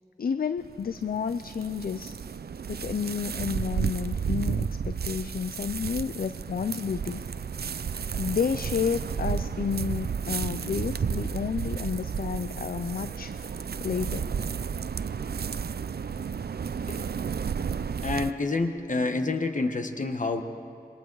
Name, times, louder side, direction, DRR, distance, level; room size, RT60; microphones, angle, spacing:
voice 1, 0.2-2.1 2.7-7.2 8.1-13.3 13.8-14.3, left 6 dB, 70° left, 12 dB, 0.5 m, -31 dB
sound 1, 0.6-18.3, right 6 dB, 80° right, 0.5 m, -32 dB
voice 2, 18.0-20.4, left 3 dB, 55° left, 6 dB, 1.3 m, -28 dB
27.0 x 22.5 x 4.7 m, 2.5 s
wide cardioid pair, 80°, 16 cm